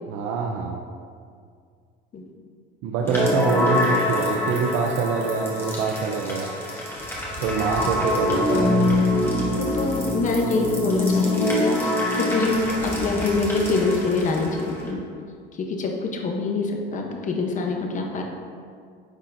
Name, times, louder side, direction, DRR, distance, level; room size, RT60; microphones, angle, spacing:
voice 1, 0.1-0.8 2.8-6.5 7.4-8.8, right 5 dB, 80° right, 1 dB, 0.6 m, -25 dB
sound 1, 3.0-14.9, left 1 dB, 10° left, 1.5 m, -25 dB
voice 2, 9.6-15.0 15.5-18.2, left 3 dB, 40° left, 1 dB, 0.8 m, -25 dB
9.6 x 4.2 x 2.6 m, 2.2 s
cardioid pair, 105°, 20 cm